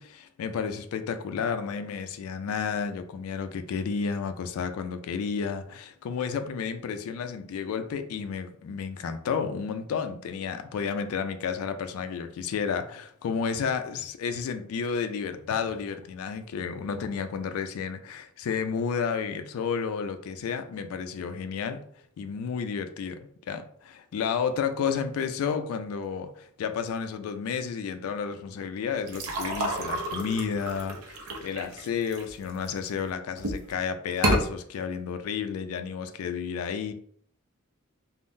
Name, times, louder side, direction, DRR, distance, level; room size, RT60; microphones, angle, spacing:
voice 1, 0.0-21.8 22.2-36.9, left 6 dB, 80° left, 0.3 m, -31 dB
sound 1, 29.1-32.9 33.4-33.7 34.1-34.4, right 1 dB, 85° right, 0.5 m, -30 dB
3.6 x 2.0 x 2.5 m
head